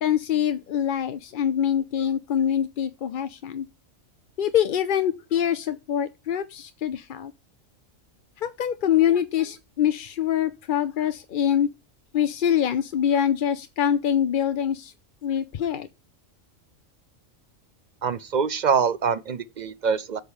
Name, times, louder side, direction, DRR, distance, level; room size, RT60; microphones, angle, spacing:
voice 1, 0.0-3.7 4.4-7.3 8.4-11.7 12.1-14.9 15.2-15.9, left 9 dB, 55° left, 0.6 m, -24 dB
voice 2, 18.0-20.2, right 6 dB, 50° right, 0.5 m, -24 dB
8.0 x 5.1 x 7.1 m
omnidirectional pair, 1.4 m